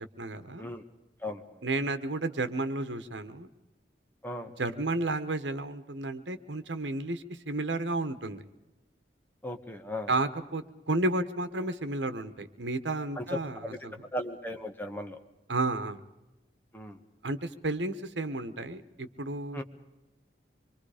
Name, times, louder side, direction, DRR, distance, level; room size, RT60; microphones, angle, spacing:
voice 1, 0.2-0.7 1.6-3.5 4.6-8.4 10.1-14.0 15.5-16.0 17.2-19.6, right 2 dB, 80° right, 10 dB, 1.2 m, -32 dB
voice 2, 9.4-10.1 13.2-13.8 14.1-15.2 16.7-17.0 19.5-19.6, left 1 dB, 10° left, 5 dB, 1.4 m, -36 dB
26.0 x 23.0 x 5.0 m, 1.0 s
head